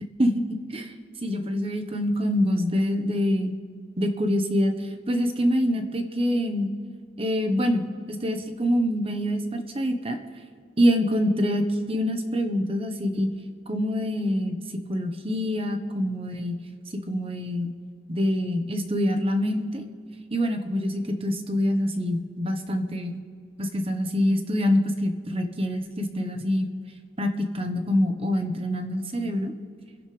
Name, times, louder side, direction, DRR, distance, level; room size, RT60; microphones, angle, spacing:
voice 1, 0.2-0.9 1.2-3.5 4.0-4.7 5.1-6.7 7.2-10.2 10.8-13.3 13.7-14.6 14.9-16.6 17.1-17.7 18.1-19.8 20.3-23.2 23.6-26.7 27.2-29.5, equal, 30° right, 6 dB, 1.3 m, -25 dB
29.0 x 10.5 x 3.5 m, 2.1 s
head